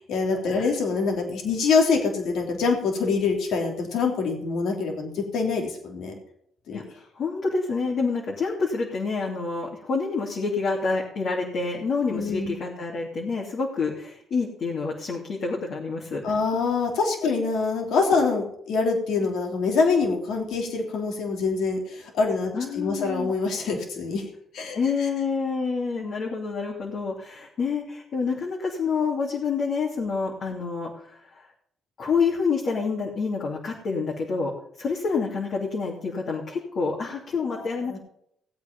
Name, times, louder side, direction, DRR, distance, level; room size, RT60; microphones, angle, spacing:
voice 1, 0.1-6.1 6.7-6.8 12.1-12.6 16.2-24.2 24.5-24.8 37.5-38.0, left 4 dB, 75° left, 2 dB, 3.2 m, -25 dB
voice 2, 7.1-16.4 22.5-23.3 24.7-31.5 32.0-34.5 34.8-38.0, left 4 dB, 60° left, -2 dB, 2.9 m, -28 dB
17.5 x 8.5 x 5.4 m, 0.71 s
cardioid pair, 90°, 0 cm